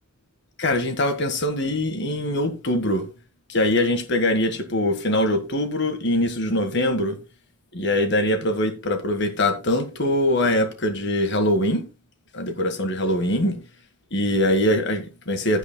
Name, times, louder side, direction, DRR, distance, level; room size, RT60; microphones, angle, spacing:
voice 1, 0.6-3.1 3.5-7.2 7.7-11.8 12.3-13.6 14.1-15.6, left 1 dB, 55° left, 1.5 m, -23 dB
16.0 x 8.2 x 2.2 m
head